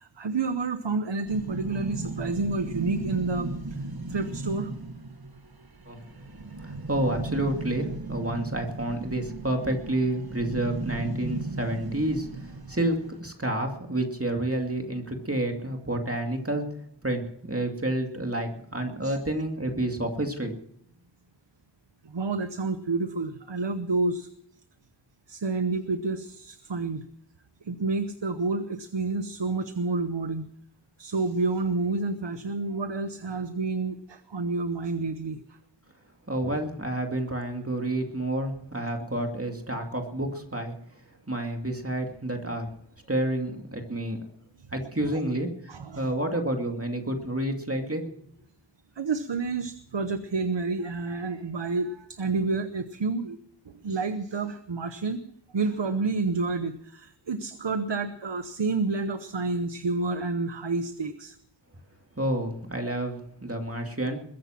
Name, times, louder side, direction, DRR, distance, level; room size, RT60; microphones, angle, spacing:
voice 1, 0.0-3.8 4.1-4.7 19.0-19.2 22.0-24.3 25.3-27.0 27.6-30.4 31.0-35.6 44.6-44.7 45.1-45.2 45.7-46.1 49.0-53.4 53.6-55.2 55.5-61.4, right 3 dB, 90° right, 10 dB, 0.9 m, -29 dB
sound 1, 1.3-13.2, right 2 dB, 60° right, 1.4 m, -36 dB
voice 2, 6.6-16.7 17.0-20.6 36.3-40.7 41.3-42.7 43.1-44.2 44.7-45.5 46.0-48.1 62.2-64.2, right 1 dB, 35° right, 3 dB, 2.4 m, -29 dB
22.0 x 10.0 x 5.9 m, 0.70 s
wide cardioid pair, 45°, 42 cm